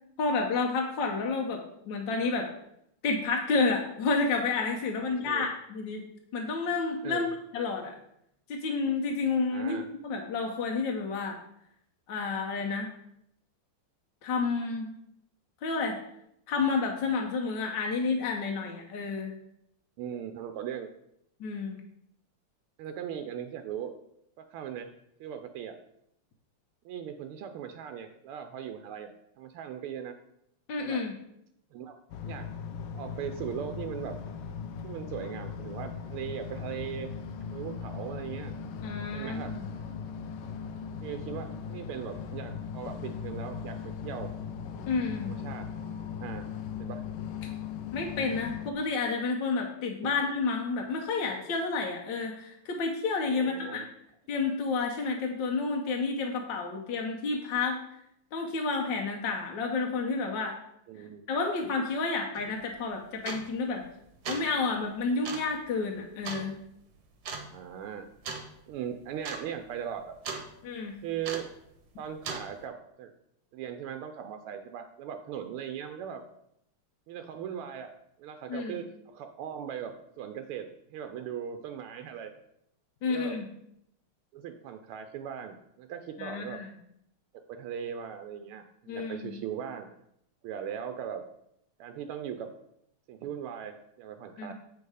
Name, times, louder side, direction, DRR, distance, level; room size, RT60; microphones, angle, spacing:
voice 1, 0.2-2.5 3.0-6.1 6.3-7.9 8.5-9.8 10.0-11.4 12.1-12.9 14.2-14.9 15.6-16.0 16.5-19.3 21.4-21.8 30.7-31.1 38.8-39.6 44.9-45.4 47.9-53.8 54.3-57.8 58.3-60.5 61.3-63.8 64.3-66.6 70.6-71.0 78.5-78.8 83.0-83.5 86.2-86.7 88.9-89.4 94.4-94.5, left 4 dB, 65° left, 1 dB, 1.4 m, -30 dB
voice 2, 5.1-5.5 7.0-7.2 9.5-9.9 20.0-20.9 22.8-23.9 24.4-24.9 25.2-25.8 26.8-29.1 29.4-30.1 30.8-31.0 31.7-31.9 32.2-32.5 32.9-34.2 34.8-37.1 37.5-38.5 39.1-39.6 41.0-43.8 44.0-44.3 45.2-45.7 46.2-46.5 46.8-47.0 50.0-50.2 53.3-53.9 60.9-61.3 67.5-68.1 68.7-70.1 71.0-71.5 72.0-73.1 73.5-76.2 77.1-77.9 78.2-80.6 80.9-82.3 83.0-83.4 84.3-86.6 87.5-89.9 90.4-91.2 91.8-92.5 93.1-94.5, right 9 dB, 85° right, 6 dB, 1.5 m, -39 dB
sound 1, 32.1-48.7, left 7 dB, 90° left, 1.6 m, -38 dB
sound 2, 62.3-62.5 63.2-63.6 64.1-64.5 65.2-65.5 66.2-66.5 67.2-67.5 68.2-68.5 68.8-68.9 69.2-69.5 69.7-70.5 71.2-71.6 72.2-72.5, right 4 dB, 55° right, 1.4 m, -37 dB
8.1 x 4.7 x 4.8 m, 0.77 s
omnidirectional pair, 2.4 m